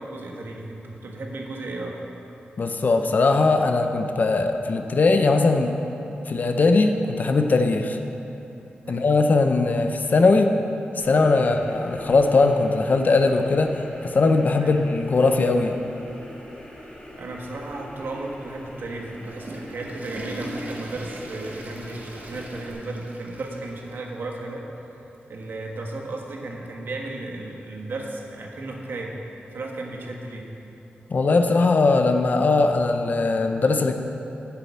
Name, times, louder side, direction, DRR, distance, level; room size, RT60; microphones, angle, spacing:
voice 1, 0.0-2.0 8.8-9.1 11.4-11.6 14.6-14.7 17.1-24.7 24.9-25.0 25.3-30.5, right 2 dB, 70° right, 0 dB, 1.4 m, -34 dB
voice 2, 2.6-5.8 6.3-8.0 8.9-10.5 11.0-15.8 31.1-33.9, left 3 dB, 50° left, 5 dB, 0.6 m, -20 dB
sound 1, 11.0-22.7, equal, 25° left, 1.9 m, -43 dB
Water / Toilet flush, 19.0-24.0 24.3-24.4 25.1-25.2 26.5-26.6, right 1 dB, 50° right, 1.2 m, -40 dB
9.3 x 7.0 x 7.2 m, 3.0 s
wide cardioid pair, 125°, 4 cm